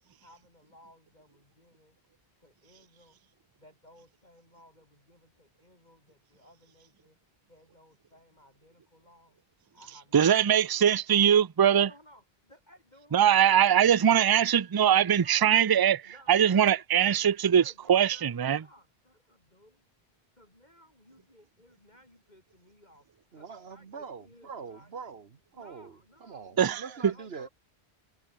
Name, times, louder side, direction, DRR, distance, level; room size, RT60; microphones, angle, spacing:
voice 1, 0.2-2.0 2.4-3.2 3.6-7.2 7.5-9.4 9.7-10.7 11.7-13.8 14.1-14.3 15.2-15.6 16.0-17.3 17.5-19.9 20.3-24.9 25.5-27.5, left 1 dB, 40° left, 6.1 m, -58 dB
voice 2, 10.1-11.9 13.1-18.6 26.6-27.1, right 9 dB, 40° right, 0.3 m, -22 dB
voice 3, 23.3-27.5, right 5 dB, 70° right, 1.7 m, -44 dB
omnidirectional pair, 1.1 m